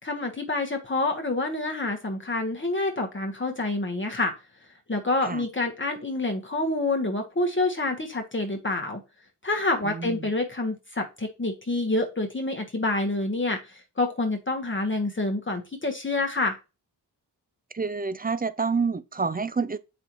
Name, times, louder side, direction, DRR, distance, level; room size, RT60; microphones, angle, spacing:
voice 1, 0.0-4.3 4.9-9.0 9.4-16.6, left 2 dB, 30° left, 1.4 m, -27 dB
voice 2, 9.8-10.3 17.7-19.8, right 4 dB, 20° right, 0.6 m, -28 dB
6.8 x 5.3 x 3.0 m
cardioid pair, 55°, 41 cm